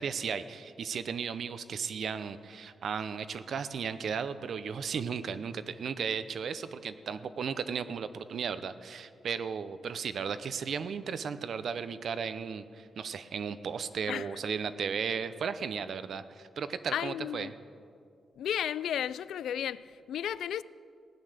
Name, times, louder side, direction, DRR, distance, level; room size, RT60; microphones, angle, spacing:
voice 1, 0.0-17.5, right 6 dB, 60° right, 0.7 m, -35 dB
voice 2, 16.9-17.5 18.4-20.6, left 10 dB, 90° left, 0.3 m, -33 dB
17.5 x 8.9 x 6.5 m
cardioid pair, 115°, 0 cm